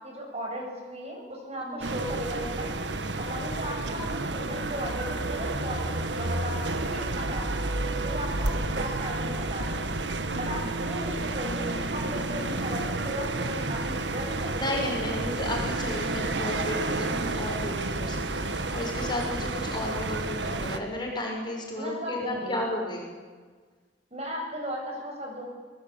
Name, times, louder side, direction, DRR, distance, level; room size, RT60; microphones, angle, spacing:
voice 1, 0.0-2.8 3.2-7.5 8.0-10.0 10.4-15.4 21.8-22.6 24.1-25.5, equal, 40° right, 1 dB, 7.6 m, -36 dB
voice 2, 1.6-1.9 10.3-10.7 14.6-23.1, left 1 dB, 25° left, 0 dB, 6.2 m, -33 dB
sound 1, 1.8-20.8, right 2 dB, 85° right, 1.7 m, -30 dB
28.0 x 20.0 x 9.0 m, 1.5 s
head